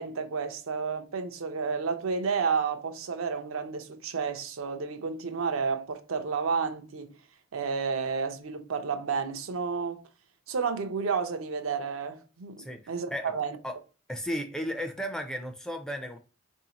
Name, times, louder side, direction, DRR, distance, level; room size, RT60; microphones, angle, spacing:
voice 1, 0.0-7.1 7.5-10.0 10.5-13.6, right 5 dB, 80° right, 0.6 m, -31 dB
voice 2, 12.6-13.3 13.6-13.8 14.1-16.2, equal, 5° left, 0.3 m, -34 dB
4.1 x 2.6 x 2.8 m
head